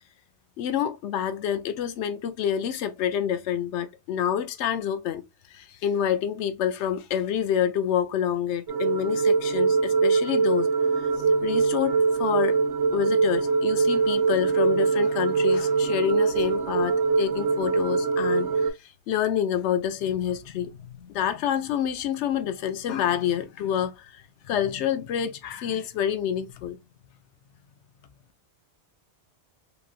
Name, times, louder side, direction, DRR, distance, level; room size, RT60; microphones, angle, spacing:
voice 1, 0.6-5.2 5.5-10.7 11.4-12.6 12.9-26.8, left 9 dB, 85° left, 0.9 m, -28 dB
sound 1, 8.7-18.7, right 4 dB, 80° right, 1.0 m, -23 dB
3.0 x 2.6 x 2.4 m
omnidirectional pair, 1.1 m